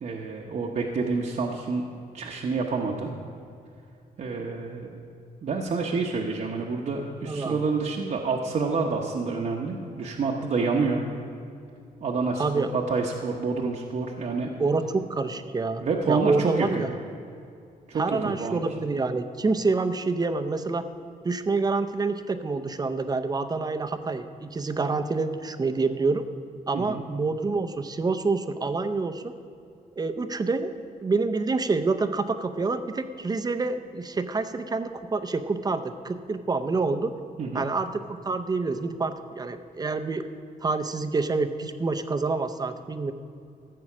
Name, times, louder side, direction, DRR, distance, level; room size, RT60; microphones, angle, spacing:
voice 1, 0.0-1.9 2.1-3.1 4.2-5.0 5.4-11.0 12.0-14.5 15.8-16.8 17.9-18.6 26.7-27.0 37.4-37.6, right 4 dB, 55° right, -1 dB, 1.0 m, -28 dB
voice 2, 7.3-7.6 12.3-12.7 14.6-17.0 17.9-20.8 21.2-26.2 26.7-29.3 30.0-37.1 37.5-40.2 40.6-43.1, right 3 dB, 25° right, 9 dB, 0.6 m, -27 dB
14.0 x 7.7 x 6.1 m, 2.5 s
cardioid pair, 125°, 15 cm